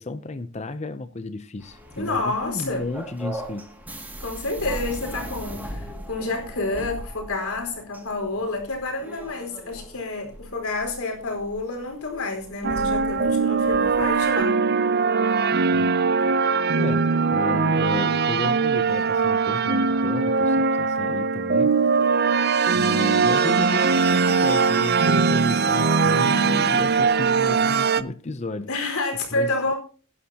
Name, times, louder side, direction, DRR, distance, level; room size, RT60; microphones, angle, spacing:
voice 1, 0.0-3.7 15.7-16.0 16.8-21.7 22.7-28.7 29.3-29.5, left 2 dB, 30° left, 0.6 m, -33 dB
sound 1, 1.6-14.5, equal, 10° right, 2.3 m, -39 dB
voice 2, 2.0-2.9 4.2-14.6 28.7-29.7, left 2 dB, 90° left, 4.7 m, -29 dB
sound 2, 12.6-28.0, right 5 dB, 50° right, 0.6 m, -21 dB
18.0 x 11.0 x 2.9 m
head